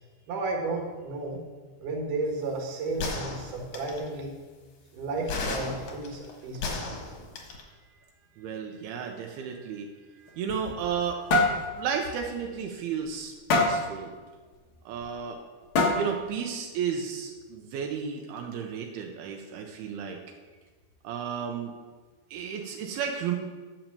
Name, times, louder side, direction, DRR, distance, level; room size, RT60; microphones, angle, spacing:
voice 1, 0.3-1.4 1.8-4.3 4.9-6.8, right 3 dB, 60° right, 0 dB, 3.0 m, -33 dB
sound 1, 3.0-4.1 5.3-7.6, left 3 dB, 55° left, 1.9 m, -34 dB
voice 2, 8.4-9.9 10.2-11.2 11.8-14.1 14.9-15.4 15.9-20.2 21.0-21.7 22.3-23.4, right 7 dB, 85° right, 2 dB, 2.7 m, -33 dB
sound 2, 10.3-11.0 11.3-11.6 12.0-12.2 12.6-12.7 13.5-13.9 15.0-15.1 15.7-16.2, left 2 dB, 75° left, 1.1 m, -23 dB
10.5 x 6.0 x 6.9 m, 1.4 s
omnidirectional pair, 4.5 m